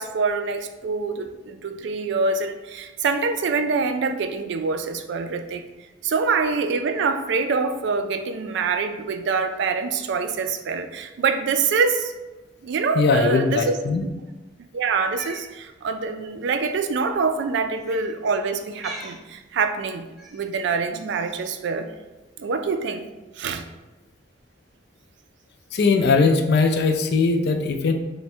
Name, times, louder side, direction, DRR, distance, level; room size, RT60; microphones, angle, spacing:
voice 1, 0.0-5.6 6.0-12.1 12.6-13.8 14.7-21.9 22.4-23.1 23.3-23.7, right 4 dB, 60° right, 8 dB, 0.3 m, -25 dB
voice 2, 13.0-14.1 25.7-27.9, left 4 dB, 55° left, 5 dB, 0.4 m, -20 dB
Cat, 15.0-15.5 16.5-16.7 17.8-18.1 18.7-19.2 20.2-20.5, right 2 dB, ahead, 0.8 m, -39 dB
3.4 x 2.2 x 4.2 m, 1.1 s
head